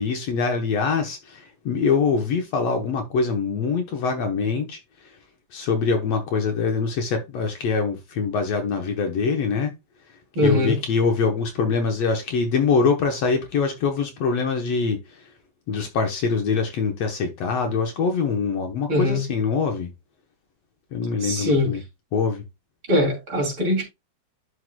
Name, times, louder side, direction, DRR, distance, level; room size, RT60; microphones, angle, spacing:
voice 1, 0.0-5.2 5.5-9.7 10.4-15.3 15.7-19.9 20.9-21.8 22.1-22.4, left 5 dB, 65° left, 1.9 m, -24 dB
voice 2, 10.3-10.8 18.9-19.2 21.2-21.7 22.9-23.8, left 1 dB, 45° right, 3.4 m, -21 dB
11.0 x 4.8 x 2.2 m
omnidirectional pair, 3.4 m